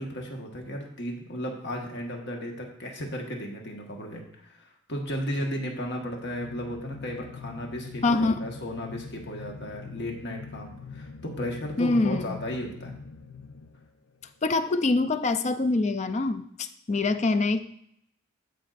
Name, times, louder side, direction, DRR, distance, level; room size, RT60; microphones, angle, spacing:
voice 1, 0.0-12.9, equal, 55° left, 1 dB, 1.5 m, -35 dB
sound 1, 5.9-14.3, left 4 dB, 80° left, 0.6 m, -44 dB
voice 2, 8.0-8.4 11.8-12.4 14.4-17.6, left 3 dB, 35° left, 11 dB, 0.4 m, -25 dB
14.5 x 5.3 x 2.5 m, 0.72 s
head